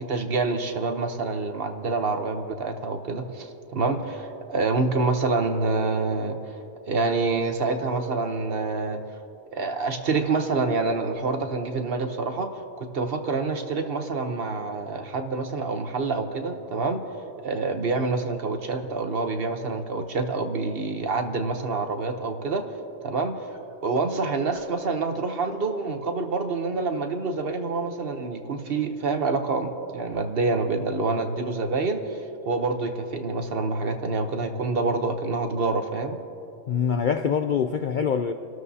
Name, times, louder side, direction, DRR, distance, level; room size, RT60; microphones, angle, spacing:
voice 1, 0.0-6.5 6.9-9.0 9.5-17.0 17.4-22.6 23.0-32.2 32.5-36.2, right 3 dB, 50° right, 6 dB, 1.0 m, -27 dB
voice 2, 36.7-38.3, left 7 dB, 85° left, 7 dB, 0.4 m, -24 dB
29.0 x 12.5 x 2.8 m, 2.7 s
omnidirectional pair, 1.4 m